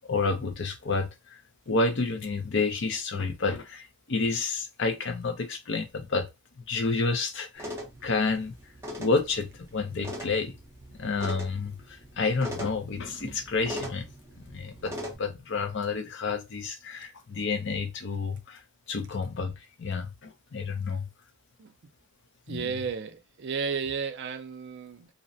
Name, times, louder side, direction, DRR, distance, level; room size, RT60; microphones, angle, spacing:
voice 1, 0.1-1.4 1.7-6.3 6.7-7.7 8.0-8.5 9.0-10.5 11.0-14.1 14.4-18.6 18.9-21.1 22.5-22.7, left 4 dB, 55° left, 0.5 m, -30 dB
sound 1, 7.5-15.1, equal, 10° right, 0.7 m, -41 dB
voice 2, 22.5-25.1, right 5 dB, 55° right, 0.4 m, -33 dB
2.6 x 2.1 x 2.6 m
head